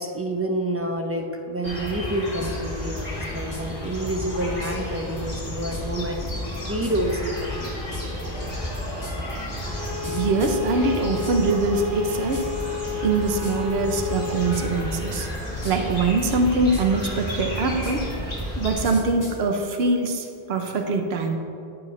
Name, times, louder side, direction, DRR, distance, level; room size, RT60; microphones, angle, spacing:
voice 1, 0.0-7.8, right 1 dB, 20° right, 3 dB, 0.4 m, -28 dB
sound 1, 1.6-18.8, left 1 dB, 40° left, 2.1 m, -32 dB
sound 2, 1.9-2.0 2.4-2.6 3.0-3.7 4.1-4.2 4.6-4.8 5.2-11.5 11.8-12.6 12.9-13.2 13.4-13.7 14.0-14.8 15.1-15.9 16.2-19.4, equal, 20° left, 1.6 m, -38 dB
Bowed string instrument, 9.5-14.7, left 7 dB, 55° right, 1.4 m, -32 dB
voice 2, 10.1-12.4 13.0-15.3 15.6-18.1 18.6-21.4, right 3 dB, 85° right, 4 dB, 0.9 m, -23 dB
14.0 x 4.9 x 3.1 m, 2.7 s
omnidirectional pair, 1.0 m